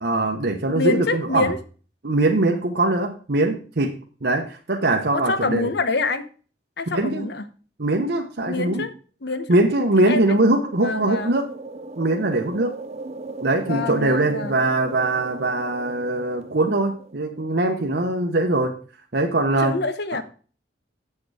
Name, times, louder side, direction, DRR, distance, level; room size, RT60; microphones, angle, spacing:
voice 1, 0.0-1.5 2.0-5.7 6.9-7.3 7.8-8.8 9.5-11.5 12.0-12.8 13.4-18.8 19.1-19.8, right 2 dB, 60° right, 1.0 m, -22 dB
voice 2, 0.7-1.6 5.1-6.3 6.8-7.5 8.5-8.9 9.2-9.6 10.0-10.5 10.8-11.4 13.6-14.6 19.6-20.2, left 3 dB, 65° left, 0.9 m, -26 dB
sound 1, 9.8-17.5, right 3 dB, 35° right, 0.6 m, -38 dB
8.5 x 6.6 x 4.8 m
head